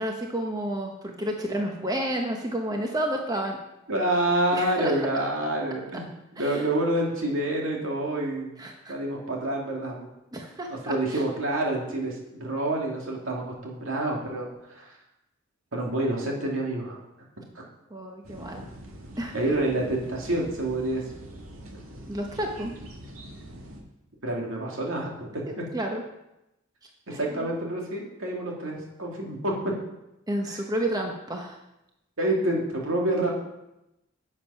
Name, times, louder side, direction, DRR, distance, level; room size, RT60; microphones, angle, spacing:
voice 1, 0.0-3.6 4.5-4.9 6.4-6.7 8.6-8.9 10.3-11.2 17.9-18.6 19.2-19.3 22.1-22.7 25.5-26.0 27.1-27.5 30.3-31.6, right 1 dB, 20° right, 2 dB, 1.0 m, -31 dB
voice 2, 3.9-6.0 6.3-8.5 8.9-10.1 10.7-14.9 15.7-17.0 17.6-17.7 19.3-21.0 24.2-25.6 27.1-29.8 30.5-30.6 32.2-33.3, right 1 dB, 70° right, -1 dB, 2.6 m, -28 dB
sound 1, 18.2-23.8, equal, 90° right, 1.9 m, -44 dB
10.5 x 7.3 x 5.6 m, 0.90 s
head